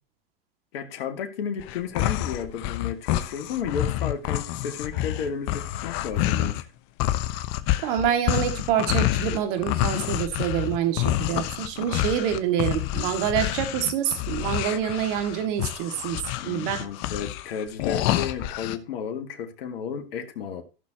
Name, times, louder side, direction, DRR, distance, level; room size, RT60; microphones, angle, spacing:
voice 1, 0.7-6.7 16.3-20.6, left 7 dB, 75° left, 2.0 m, -33 dB
sound 1, 1.6-6.6 7.0-18.8, left 14 dB, 50° left, 1.0 m, -28 dB
voice 2, 7.8-16.8, right 9 dB, 60° right, 2.3 m, -26 dB
15.0 x 6.3 x 2.9 m
hypercardioid pair, 110°, 30 cm